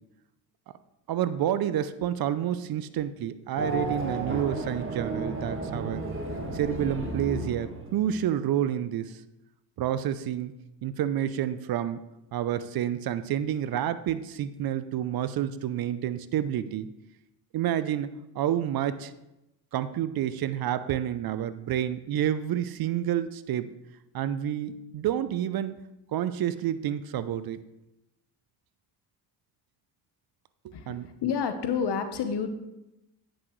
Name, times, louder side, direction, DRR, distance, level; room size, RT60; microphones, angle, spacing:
voice 1, 1.1-6.0 6.5-9.2 9.8-10.5 10.8-12.0 12.3-16.9 17.5-18.1 18.3-19.1 19.7-23.7 24.1-25.8 26.1-27.6 30.6-31.1, right 10 dB, 50° right, 14 dB, 0.6 m, -29 dB
Race car auto racing / Accelerating revving vroom, 3.5-8.3, right 2 dB, 25° right, 1.5 m, -33 dB
voice 2, 30.7-32.5, left 6 dB, 55° left, 9 dB, 1.1 m, -29 dB
9.9 x 6.1 x 3.1 m, 0.93 s
supercardioid pair, 65°, 48 cm